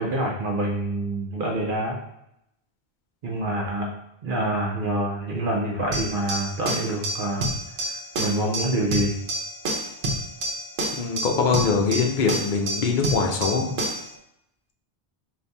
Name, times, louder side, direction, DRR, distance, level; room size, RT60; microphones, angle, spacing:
voice 1, 0.0-2.0 3.2-3.9 4.2-7.5 7.9-9.2, right 1 dB, 60° right, -2 dB, 0.8 m, -26 dB
sound 1, 5.9-14.1, right 1 dB, 80° right, 1.0 m, -29 dB
voice 2, 11.0-13.7, left 5 dB, 55° left, 1 dB, 0.7 m, -23 dB
4.0 x 2.6 x 3.4 m, 0.80 s
omnidirectional pair, 1.0 m